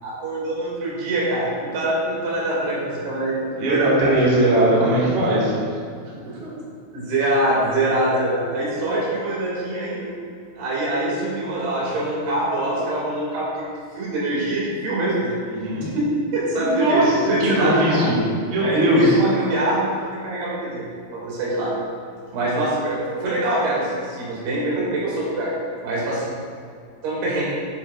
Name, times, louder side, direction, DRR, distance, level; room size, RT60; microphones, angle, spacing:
voice 1, 0.0-4.2 6.9-10.1 10.6-13.7 13.9-15.4 15.7-18.0 18.6-20.8 21.1-21.7 22.3-25.5 25.8-26.3 27.0-27.5, right 1 dB, 75° right, -6 dB, 4.4 m, -24 dB
voice 2, 3.6-5.6 6.4-6.5 15.4-15.9 16.5-18.2 18.5-19.2, right 1 dB, 40° right, -6 dB, 2.4 m, -20 dB
11.0 x 9.7 x 2.5 m, 2.3 s
omnidirectional pair, 4.6 m